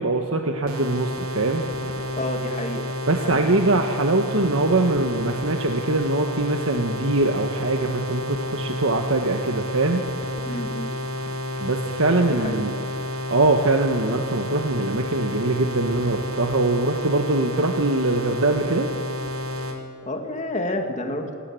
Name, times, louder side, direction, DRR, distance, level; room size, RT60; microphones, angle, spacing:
voice 1, 0.0-1.6 3.1-10.1 11.6-12.7 13.3-18.9, right 2 dB, 65° right, 4 dB, 1.3 m, -22 dB
sound 1, 0.7-19.8, left 1 dB, 80° right, 3.0 m, -30 dB
voice 2, 2.1-2.9 3.2-3.4 10.5-10.9 12.3-12.7 20.1-21.3, left 1 dB, 35° left, 4 dB, 2.2 m, -29 dB
27.0 x 17.5 x 7.7 m, 2.6 s
head